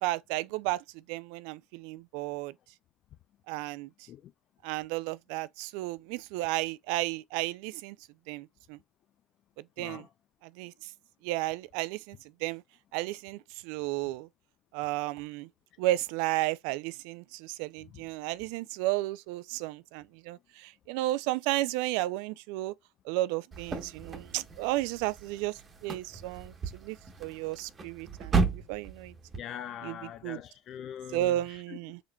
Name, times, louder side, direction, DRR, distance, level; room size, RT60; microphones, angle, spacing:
voice 1, 0.0-2.5 3.5-3.9 4.6-8.0 8.3-8.8 9.8-10.0 10.4-10.9 11.2-12.6 12.9-14.3 14.7-15.5 15.8-22.7 23.1-28.3 28.7-29.1 29.8-30.0 30.2-30.4 31.1-32.0, right 17 dB, 70° right, 0.3 m, -33 dB
voice 2, 9.8-10.1 29.4-31.8, left 10 dB, 50° left, 0.4 m, -42 dB
sound 1, 23.5-29.4, right 4 dB, 35° right, 1.1 m, -34 dB
4.9 x 2.9 x 2.3 m
hypercardioid pair, 70°, 0 cm